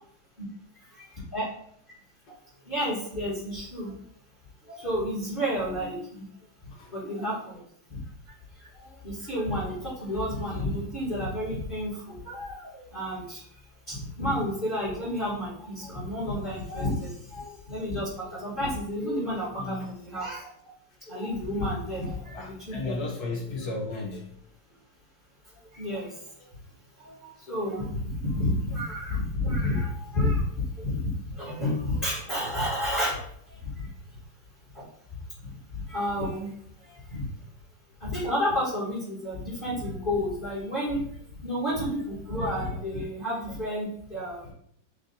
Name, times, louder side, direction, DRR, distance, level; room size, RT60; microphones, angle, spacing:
voice 1, 0.7-1.5 2.3-2.4 2.6-3.9 4.6-6.2 6.6-7.6 7.9-8.0 8.2-20.7 21.0-23.0 25.4-26.5 27.0-34.2 34.7-34.9 35.4-37.3 38.0-44.5, left 1 dB, 30° left, -9 dB, 1.4 m, -31 dB
voice 2, 19.6-19.9 22.3-24.3, left 2 dB, 65° left, -1 dB, 1.1 m, -34 dB
6.6 x 2.5 x 2.7 m, 0.70 s
omnidirectional pair, 2.1 m